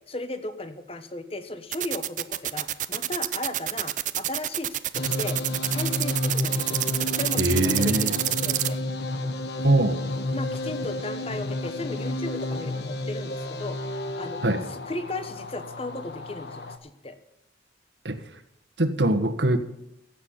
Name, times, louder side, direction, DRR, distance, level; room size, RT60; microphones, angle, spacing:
voice 1, 0.1-5.4 5.7-8.8 10.3-17.2, left 2 dB, 35° left, 9 dB, 1.2 m, -36 dB
sound 1, 1.7-8.7, right 13 dB, 45° right, 0.6 m, -27 dB
sound 2, 4.9-16.8, left 2 dB, 65° left, 1.2 m, -31 dB
voice 2, 7.4-8.1 9.6-10.0 14.4-14.6 18.0-18.2 18.8-19.6, right 1 dB, 80° right, 7 dB, 1.5 m, -22 dB
16.0 x 7.3 x 8.7 m, 0.86 s
head